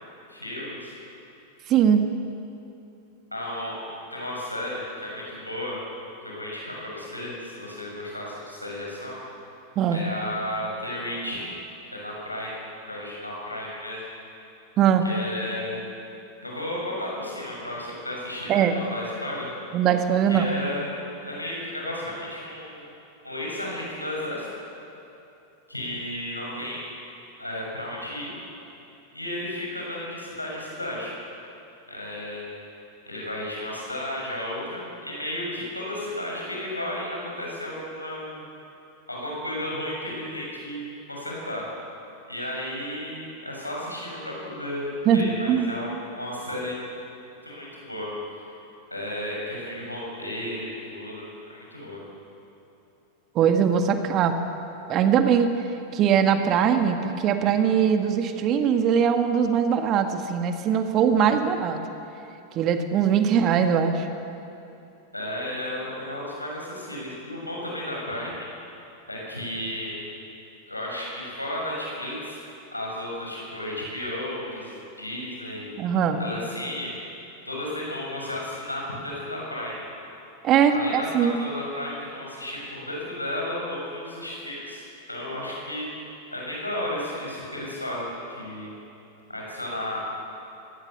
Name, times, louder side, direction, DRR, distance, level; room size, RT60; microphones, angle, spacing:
voice 1, 0.3-1.0 3.3-3.8 4.1-5.8 6.2-9.2 9.9-11.5 11.9-12.6 12.9-14.0 15.0-15.9 16.4-19.5 20.3-22.9 23.2-24.5 25.7-26.9 27.4-28.3 29.1-31.2 31.9-32.4 33.1-38.5 39.1-41.7 42.3-46.8 47.4-48.1 48.9-52.0 65.1-68.5 69.1-70.0 70.7-72.4 72.7-75.7 76.2-76.9 77.4-79.8 80.7-85.9 86.3-88.7 89.3-90.0, left 1 dB, 85° left, -3 dB, 7.1 m, -33 dB
voice 2, 1.7-2.0 9.8-10.0 14.8-15.0 18.5-18.7 19.7-20.5 45.1-45.7 53.4-54.3 54.9-55.7 55.9-61.8 62.6-64.1 75.8-76.2 80.4-81.4, right 8 dB, 35° right, 7 dB, 1.8 m, -21 dB
23.5 x 19.0 x 7.0 m, 2.8 s
figure-of-eight pair, 90°, 0 cm